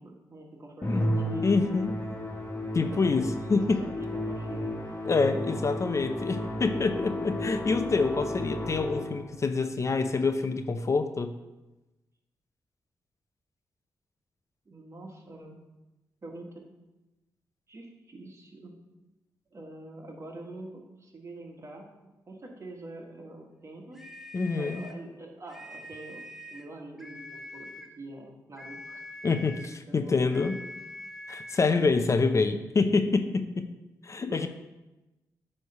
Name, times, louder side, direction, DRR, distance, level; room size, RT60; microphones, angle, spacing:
voice 1, 0.0-2.0 2.8-3.3 3.8-4.9 14.6-15.6 16.2-16.7 17.7-18.7 19.5-21.9 22.3-24.0 24.5-26.2 26.5-29.0 29.9-30.5 31.6-32.0 34.2-34.5, right 2 dB, 40° right, 1 dB, 1.6 m, -45 dB
Musical instrument, 0.8-9.3, left 1 dB, 25° left, 1.7 m, -33 dB
voice 2, 1.4-1.9 2.7-3.9 5.1-11.3 24.3-24.8 29.2-30.6 31.3-33.7 34.0-34.5, left 4 dB, 45° left, 9 dB, 0.5 m, -26 dB
sound 1, 23.9-25.0 25.5-26.7 27.0-28.0 28.6-29.8 30.3-31.7, left 1 dB, 5° right, 0.9 m, -44 dB
9.0 x 3.3 x 5.5 m, 1.0 s
supercardioid pair, 50°, 7 cm